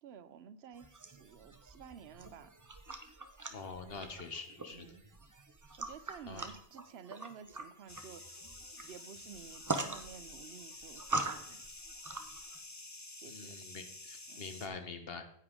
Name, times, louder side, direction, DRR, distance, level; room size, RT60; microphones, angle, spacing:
voice 1, 0.0-2.5 4.7-5.0 5.8-8.5 8.9-11.6 13.2-13.6 14.3-14.5, right 7 dB, 80° right, 13 dB, 0.9 m, -52 dB
sound 1, 0.8-12.6, right 2 dB, 20° right, 0.6 m, -43 dB
voice 2, 3.5-4.9 6.3-6.5 13.2-15.3, left 4 dB, 70° left, 7 dB, 1.3 m, -45 dB
sound 2, 7.9-14.7, left 2 dB, 20° left, 0.7 m, -50 dB
9.8 x 8.7 x 3.7 m, 0.65 s
omnidirectional pair, 1.0 m